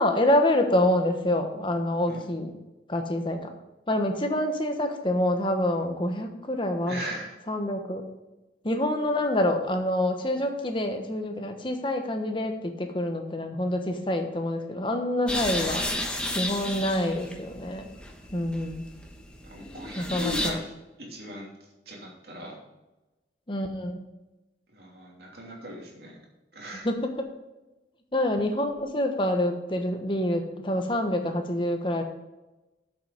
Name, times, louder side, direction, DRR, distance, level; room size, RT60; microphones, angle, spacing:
voice 1, 0.0-2.5 2.9-3.5 3.9-7.0 7.5-8.1 8.6-15.8 16.3-17.9 18.3-18.8 19.9-20.6 23.5-24.1 26.8-27.1 28.1-32.0, left 1 dB, 30° left, 5 dB, 1.2 m, -26 dB
voice 2, 6.9-7.3 15.4-15.8 19.4-20.7 21.0-21.5 21.8-22.6 24.7-26.2 26.5-26.9, left 1 dB, 60° right, -2 dB, 2.9 m, -38 dB
sound 1, 15.3-20.5, left 1 dB, 5° left, 1.1 m, -33 dB
8.1 x 7.5 x 5.1 m, 1.0 s
head